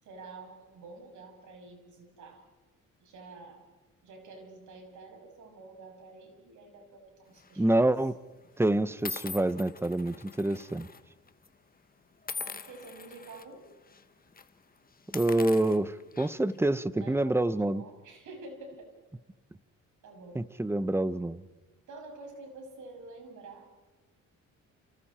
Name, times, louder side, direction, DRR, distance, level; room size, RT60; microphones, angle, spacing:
voice 1, 0.0-2.5 3.0-3.7 4.0-7.8 12.4-13.7 16.8-18.9 20.0-20.4 21.9-23.7, right 3 dB, 75° right, 3 dB, 6.8 m, -48 dB
sound 1, 7.4-7.7 8.4-8.5 9.1-11.0 11.3-11.5 12.3-13.4 13.9-14.0 14.3-14.5 15.0-16.6, left 4 dB, 30° left, 1.3 m, -42 dB
voice 2, 7.6-8.2 8.6-10.9 15.1-17.8 20.3-21.4, right 1 dB, 10° right, 14 dB, 1.0 m, -27 dB
29.5 x 29.5 x 4.4 m, 1.1 s
cardioid pair, 90°, 30 cm